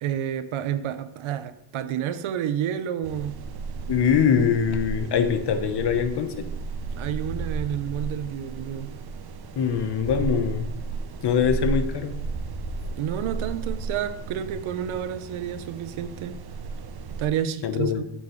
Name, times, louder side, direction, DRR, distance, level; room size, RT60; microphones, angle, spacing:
voice 1, 0.0-3.4 7.0-8.9 12.9-16.4 17.2-18.0, right 9 dB, 85° right, 0.8 m, -30 dB
sound 1, 3.0-17.3, right 4 dB, 55° right, 0.8 m, -34 dB
voice 2, 3.9-6.4 9.6-10.7 11.2-12.2 17.6-18.0, left 7 dB, 60° left, 0.9 m, -23 dB
8.4 x 7.4 x 3.1 m
wide cardioid pair, 135°, 47 cm